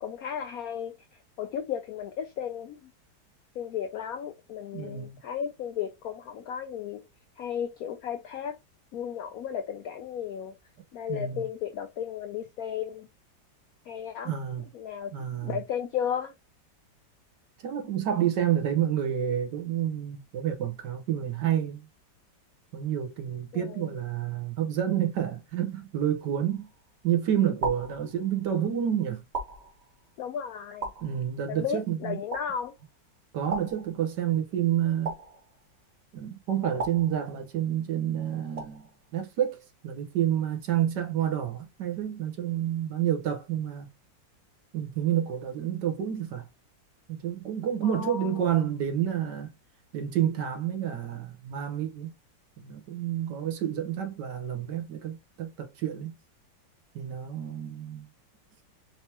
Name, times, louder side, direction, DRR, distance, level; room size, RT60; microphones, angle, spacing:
voice 1, 0.0-1.0 1.4-2.8 3.6-7.0 7.4-8.5 8.9-10.5 10.9-13.1 13.9-14.3 14.7-15.1 15.4-16.3 23.5-23.6 30.2-30.9 31.5-32.7 47.8-48.3, left 8 dB, 75° left, 0.8 m, -34 dB
voice 2, 4.7-5.2 11.1-11.5 14.2-14.7 15.1-15.6 17.6-21.9 22.7-26.7 27.0-29.2 31.0-32.2 33.3-35.2 36.1-38.9 39.1-39.6 39.8-43.9 44.7-46.5 47.1-49.5 49.9-52.1 52.6-56.1 56.9-58.1, right 10 dB, 70° right, 1.4 m, -29 dB
sound 1, 26.5-27.0 27.6-28.6 29.3-30.2 30.8-31.7 32.3-33.0 33.5-34.4 35.0-35.9 36.8-37.8 38.6-39.2, right 3 dB, 35° right, 1.5 m, -38 dB
4.4 x 3.3 x 2.8 m
omnidirectional pair, 2.1 m